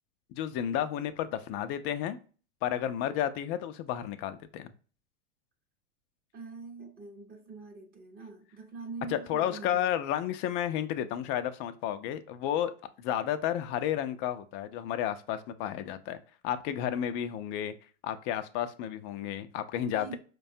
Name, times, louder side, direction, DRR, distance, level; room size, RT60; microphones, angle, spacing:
voice 1, 0.4-2.2 2.6-4.7 9.1-12.7 13.0-16.2 16.4-17.7 18.0-20.2, left 10 dB, 35° left, 0.4 m, -32 dB
voice 2, 6.3-9.9 19.9-20.2, right 4 dB, 25° right, 0.8 m, -44 dB
4.5 x 2.2 x 2.6 m
hypercardioid pair, 115°, 36 cm